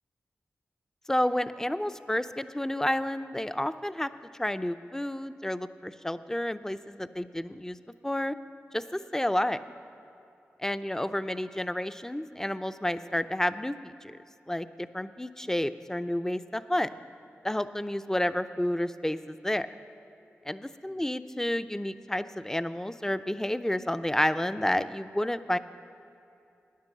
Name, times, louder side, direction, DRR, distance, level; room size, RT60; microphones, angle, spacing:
voice 1, 1.1-4.1 4.4-7.8 8.0-8.4 8.7-9.6 10.6-14.2 14.5-16.9 17.4-19.7 20.5-25.6, left 1 dB, 10° left, 12 dB, 0.5 m, -30 dB
13.0 x 9.6 x 7.3 m, 2.7 s
cardioid pair, 50°, 5 cm